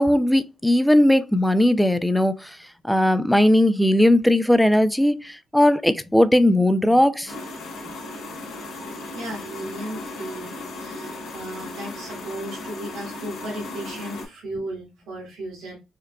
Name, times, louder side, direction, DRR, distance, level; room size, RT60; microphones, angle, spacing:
voice 1, 0.0-2.5 2.8-7.3, left 1 dB, ahead, 0.4 m, -18 dB
sound 1, 7.3-14.3, left 2 dB, 80° left, 1.4 m, -36 dB
voice 2, 9.1-10.5 10.8-15.8, right 1 dB, 80° right, 1.7 m, -35 dB
4.6 x 2.3 x 2.2 m
cardioid pair, 90°, 0 cm